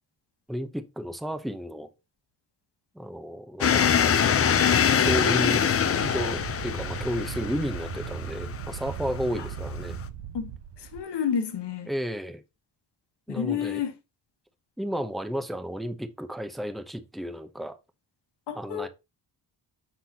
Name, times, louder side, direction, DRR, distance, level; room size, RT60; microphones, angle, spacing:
voice 1, 0.5-1.9 2.9-3.9 5.0-10.0 11.9-12.4 13.3-13.8 14.8-17.8 18.5-18.9, equal, ahead, 0.8 m, -32 dB
sound 1, 3.6-10.1, left 7 dB, 35° left, 0.5 m, -24 dB
Wind, 4.6-11.0, right 10 dB, 75° right, 0.7 m, -38 dB
voice 2, 10.8-11.9 13.3-13.9 18.5-18.9, left 8 dB, 70° left, 1.3 m, -30 dB
5.9 x 5.9 x 2.8 m
cardioid pair, 110°, 43 cm